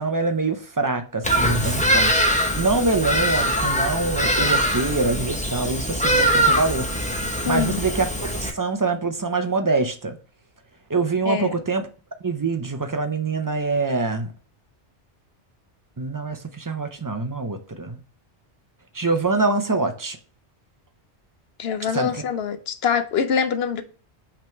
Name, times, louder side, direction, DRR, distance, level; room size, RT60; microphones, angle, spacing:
voice 1, 0.0-6.9 7.4-10.2 10.9-11.9 12.2-14.3 16.0-18.0 18.9-20.2 21.9-22.2, right 3 dB, 25° right, 0.5 m, -25 dB
Bird vocalization bird call bird song, 1.2-8.5, equal, 5° left, 0.8 m, -22 dB
voice 2, 7.4-7.9 11.3-11.6 21.6-23.8, left 7 dB, 65° left, 0.8 m, -24 dB
5.8 x 3.7 x 4.5 m
omnidirectional pair, 1.2 m